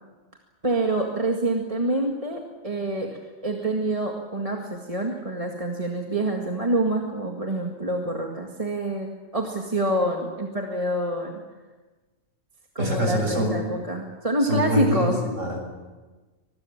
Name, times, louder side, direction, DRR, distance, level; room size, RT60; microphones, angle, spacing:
voice 1, 0.6-11.4 12.8-15.2, right 1 dB, 25° right, 1 dB, 2.1 m, -26 dB
voice 2, 12.8-13.6 14.5-15.6, equal, 75° right, 1 dB, 7.0 m, -25 dB
25.0 x 20.5 x 7.4 m, 1.3 s
omnidirectional pair, 1.3 m